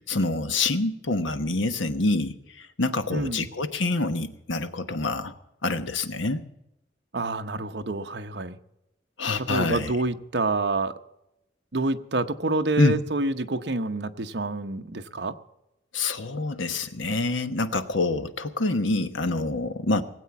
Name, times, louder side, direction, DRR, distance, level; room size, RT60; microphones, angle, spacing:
voice 1, 0.1-5.3 5.6-6.4 9.2-9.9 12.8-12.9 15.9-20.0, left 2 dB, 85° left, 10 dB, 1.2 m, -26 dB
voice 2, 3.1-3.5 7.1-8.6 9.5-10.9 11.7-15.4, right 2 dB, 60° right, 7 dB, 0.8 m, -27 dB
19.5 x 8.3 x 7.1 m, 0.88 s
head